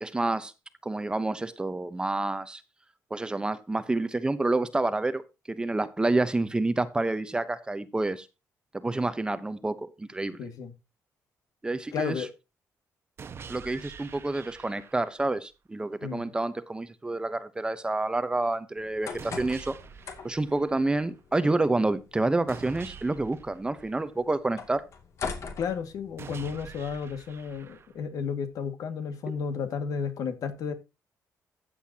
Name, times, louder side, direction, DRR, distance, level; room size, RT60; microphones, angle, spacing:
voice 1, 0.0-0.5 0.8-2.6 3.1-5.2 5.5-8.3 8.8-10.5 11.6-12.3 13.5-19.8 20.2-24.8 29.3-29.4, right 2 dB, 15° right, 0.8 m, -28 dB
voice 2, 10.4-10.7 11.9-12.3 16.0-16.3 25.6-30.7, left 6 dB, 70° left, 2.0 m, -32 dB
sound 1, 13.2-15.2 19.2-21.2 22.5-24.5 26.2-28.2, right 6 dB, 40° right, 1.1 m, -46 dB
sound 2, 18.8-26.5, left 5 dB, 50° left, 2.4 m, -43 dB
14.5 x 7.9 x 2.8 m
cardioid pair, 130°, 6 cm